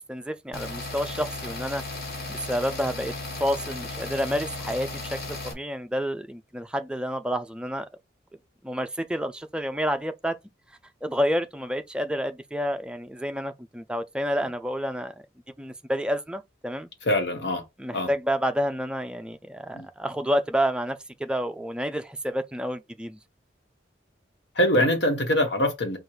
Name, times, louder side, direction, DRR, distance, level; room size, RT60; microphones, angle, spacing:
voice 1, 0.1-1.8 2.3-3.1 3.4-7.9 8.6-10.4 11.0-15.1 15.6-16.9 17.8-23.2, equal, 5° right, 0.3 m, -29 dB
sound 1, 0.5-5.5, left 2 dB, 55° left, 1.6 m, -35 dB
voice 2, 17.0-17.6 17.9-18.1 19.7-19.9 24.6-26.0, left 1 dB, 75° left, 1.2 m, -23 dB
4.5 x 2.4 x 4.8 m
head